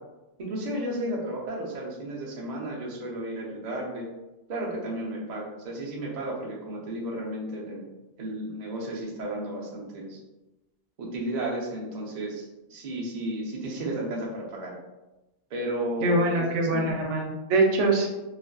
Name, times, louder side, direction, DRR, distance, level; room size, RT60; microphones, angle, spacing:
voice 1, 0.4-4.1 4.5-7.9 8.2-10.2 11.0-14.8 15.5-16.4 16.7-16.9, right 1 dB, 50° right, -3 dB, 0.6 m, -33 dB
voice 2, 16.0-18.1, right 2 dB, 80° right, 0 dB, 0.9 m, -23 dB
2.5 x 2.4 x 2.2 m, 1.0 s
omnidirectional pair, 1.3 m